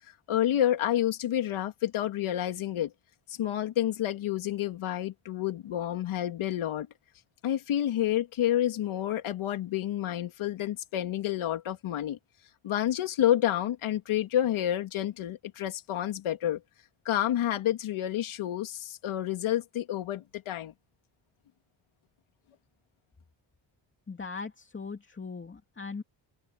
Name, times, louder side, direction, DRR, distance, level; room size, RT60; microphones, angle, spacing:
voice 1, 0.3-2.9 3.3-6.9 7.4-12.2 12.6-16.6 17.0-20.7, left 12 dB, 85° left, 3.1 m, -29 dB
voice 2, 24.1-26.0, left 4 dB, 25° left, 2.5 m, -39 dB
cardioid pair, 115°, 47 cm